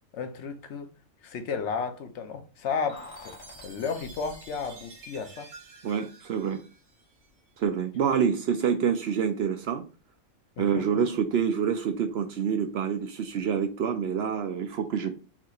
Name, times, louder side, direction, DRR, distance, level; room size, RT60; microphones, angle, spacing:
voice 1, 0.1-0.9 1.2-3.4 3.6-5.5 10.6-10.8, left 5 dB, 65° left, 0.9 m, -33 dB
Keys jangling, 2.9-5.2 5.5-5.6, left 3 dB, 85° left, 1.4 m, -49 dB
Chime, 2.9-7.4, right 3 dB, 85° right, 1.2 m, -50 dB
voice 2, 5.8-6.6 7.6-9.8 10.6-15.1, right 7 dB, 65° right, 0.7 m, -27 dB
5.8 x 2.9 x 2.4 m
omnidirectional pair, 1.4 m